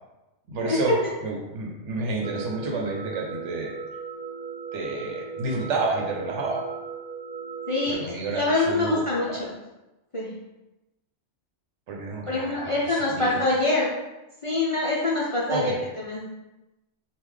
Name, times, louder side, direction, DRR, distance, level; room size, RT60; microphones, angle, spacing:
voice 1, 0.5-0.9 1.2-3.7 4.7-6.6 7.9-9.0 9.3-9.4 11.9-13.4 15.5-15.8, right 3 dB, 75° right, 0 dB, 1.0 m, -30 dB
sound 1, 2.2-7.9, right 6 dB, 55° right, 0.5 m, -37 dB
voice 2, 7.7-8.0 8.3-9.3 10.1-10.3 12.2-13.9 14.4-16.2, left 2 dB, 45° left, -6 dB, 0.4 m, -24 dB
3.7 x 2.4 x 3.1 m, 1.0 s
omnidirectional pair, 1.2 m